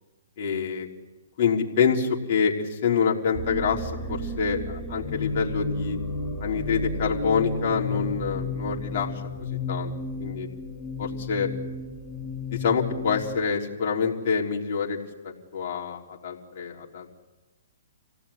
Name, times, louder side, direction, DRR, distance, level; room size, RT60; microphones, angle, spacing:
voice 1, 0.4-0.9 1.4-6.0 6.4-9.1 9.7-9.9 10.2-10.5 11.0-11.5 12.5-15.0 15.2-17.1, left 6 dB, 50° left, -2 dB, 3.7 m, -26 dB
sound 1, 3.3-13.4, left 2 dB, 10° right, 7.0 m, -32 dB
26.5 x 16.5 x 8.5 m, 1.2 s
hypercardioid pair, 135°, 0 cm